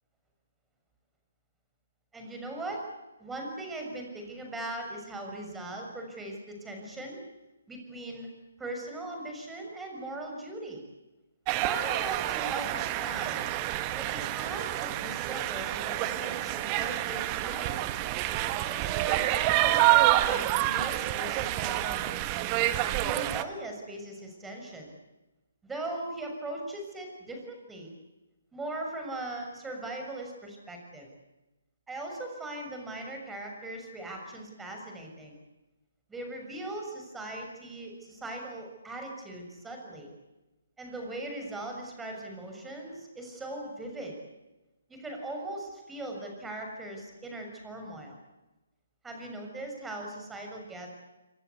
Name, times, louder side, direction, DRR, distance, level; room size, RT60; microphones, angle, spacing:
voice 1, 2.1-2.8 3.2-7.2 7.7-8.3 8.6-10.8 11.5-13.5 13.9-17.9 18.7-22.2 23.0-24.9 25.6-27.9 28.5-31.1 31.9-35.4 36.1-40.1 40.8-44.1 44.9-48.2 49.0-50.9, right 1 dB, 5° right, 2 dB, 6.6 m, -39 dB
sound 1, 11.5-23.4, right 15 dB, 25° right, 1.5 m, -28 dB
30.0 x 23.5 x 8.4 m, 1.1 s
figure-of-eight pair, 140°, 0 cm